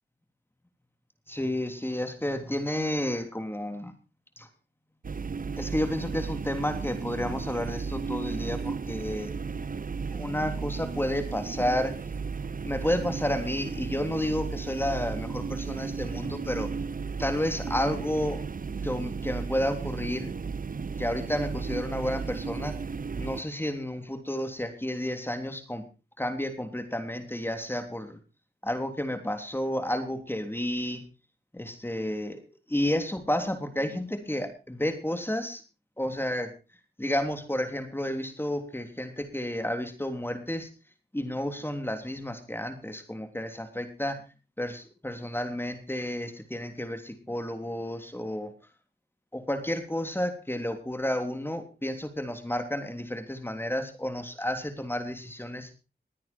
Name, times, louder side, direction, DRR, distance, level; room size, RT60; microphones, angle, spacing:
voice 1, 1.3-3.9 4.4-4.5 5.6-9.3 10.1-12.0 12.5-16.7 17.2-18.4 18.8-20.3 21.0-22.8 23.2-25.9 26.2-28.2 28.6-31.0 31.5-32.4 32.7-35.6 36.0-36.5 37.0-40.7 41.1-44.2 44.6-48.5 49.3-55.7, left 1 dB, 10° left, 7 dB, 3.2 m, -31 dB
sound 1, 5.0-23.4, right 5 dB, 55° right, 0.9 m, -34 dB
20.5 x 9.5 x 4.5 m, 0.32 s
cardioid pair, 50°, 17 cm